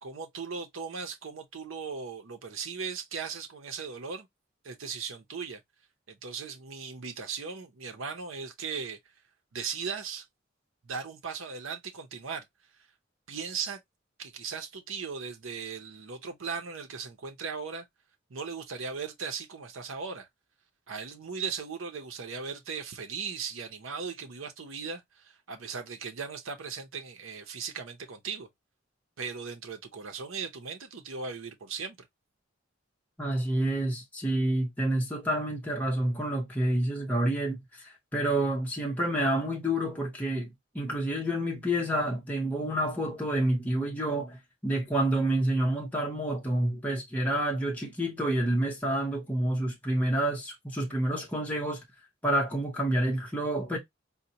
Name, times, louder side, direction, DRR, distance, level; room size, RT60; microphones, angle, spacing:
voice 1, 0.0-4.3 4.6-5.6 6.1-9.0 9.5-10.3 10.8-12.4 13.3-13.8 14.2-17.9 18.3-20.3 20.9-28.5 29.2-32.0, right 5 dB, 85° right, 0.7 m, -38 dB
voice 2, 33.2-40.5 40.7-51.8 52.2-53.8, right 1 dB, 10° left, 0.8 m, -28 dB
4.1 x 2.1 x 2.7 m
head